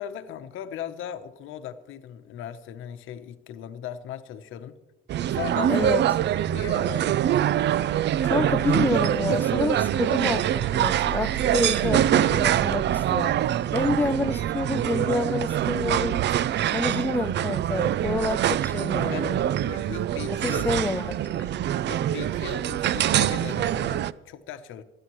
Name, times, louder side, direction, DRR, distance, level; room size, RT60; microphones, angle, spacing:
voice 1, 0.0-4.8 5.3-5.9 6.3-7.2 19.1-20.7 21.8-24.8, left 10 dB, 85° left, 0.9 m, -38 dB
sound 1, 5.1-24.1, right 11 dB, 60° right, 0.4 m, -24 dB
voice 2, 5.7-6.0 8.2-13.3 13.7-16.3 16.7-19.4 20.3-21.5, left 3 dB, 10° left, 0.5 m, -28 dB
27.5 x 9.9 x 3.1 m
cardioid pair, 90°, 20 cm